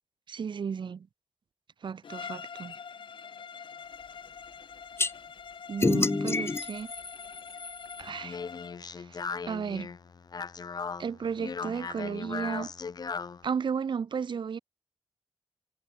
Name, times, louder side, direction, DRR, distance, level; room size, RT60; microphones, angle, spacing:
voice 1, 0.3-1.1 1.8-2.7 5.7-6.9 8.0-8.4 9.0-9.9 11.0-12.7 13.4-14.6, right 6 dB, 70° right, 1.3 m, -34 dB
Bowed string instrument, 2.0-8.8, left 6 dB, 75° left, 4.2 m, -44 dB
sound 1, 5.0-5.1 5.8-8.0, left 3 dB, 30° left, 1.1 m, -28 dB
Speech, 8.0-13.4, left 5 dB, 55° left, 1.0 m, -38 dB
wide cardioid pair, 110°, 8 cm